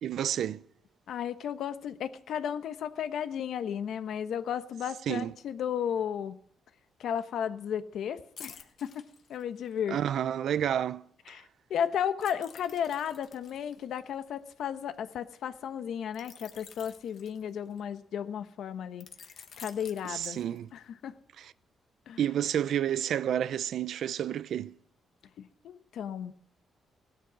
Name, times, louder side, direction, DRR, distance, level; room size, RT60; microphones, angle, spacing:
voice 1, 0.0-0.6 5.1-5.3 9.9-11.0 20.1-20.7 21.4-21.5 22.2-24.7, right 10 dB, 65° right, 0.5 m, -30 dB
voice 2, 1.1-6.4 7.0-10.0 11.3-19.1 19.6-20.4 20.7-21.1 22.1-22.2 25.4-26.3, left 8 dB, 70° left, 1.0 m, -34 dB
sound 1, 8.4-9.9 12.2-15.0 16.1-18.0 19.0-20.8 21.3-21.5, left 6 dB, 55° left, 1.4 m, -51 dB
17.0 x 12.0 x 6.2 m
cardioid pair, 130°, 0 cm